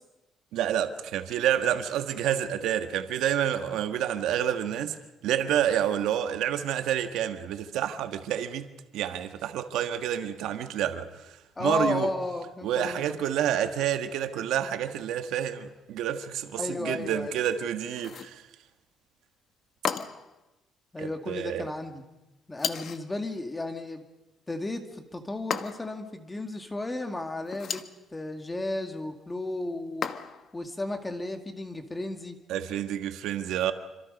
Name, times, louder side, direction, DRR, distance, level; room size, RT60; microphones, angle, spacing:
voice 1, 0.5-4.9 5.2-8.7 8.9-12.1 12.6-18.4 21.0-21.7 32.5-33.7, right 10 dB, 85° right, 1.6 m, -29 dB
voice 2, 11.6-13.1 16.5-17.4 20.9-22.0 22.5-24.0 24.5-27.8 28.1-30.1 30.5-32.4, left 2 dB, 15° left, 2.1 m, -33 dB
sound 1, 18.0-18.4 19.8-20.4 22.6-23.1 25.5-26.0 27.5-28.0 30.0-30.5, left 7 dB, 50° left, 1.1 m, -33 dB
27.0 x 25.5 x 5.4 m
cardioid pair, 155°, 0 cm